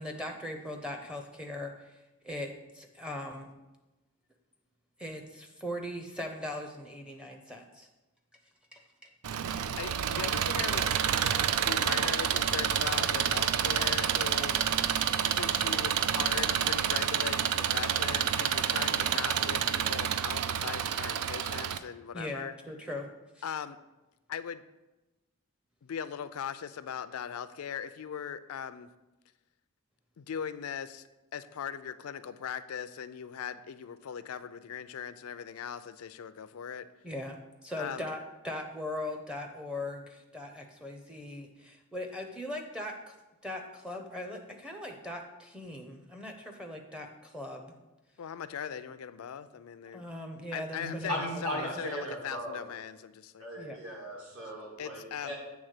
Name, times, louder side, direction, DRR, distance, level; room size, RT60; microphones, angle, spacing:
voice 1, 0.0-2.0 2.2-3.5 5.0-7.9 8.7-9.1 9.5-9.6 22.1-23.1 23.4-23.5 37.0-38.2 38.4-43.2 43.4-47.7 49.9-51.7 53.6-53.8, left 1 dB, 5° right, 2 dB, 0.6 m, -40 dB
Engine, 9.2-21.8, right 8 dB, 85° right, 0.4 m, -29 dB
voice 2, 9.8-10.9 11.6-14.7 15.3-22.5 23.4-23.8 24.3-24.6 25.8-28.9 30.2-31.1 31.3-36.9 37.8-38.0 48.2-50.0 50.5-53.5 54.8-55.3, left 8 dB, 70° left, 13 dB, 0.4 m, -39 dB
voice 3, 50.8-52.6 53.4-55.3, equal, 65° right, -4 dB, 2.3 m, -37 dB
7.9 x 3.5 x 6.5 m, 1.0 s
head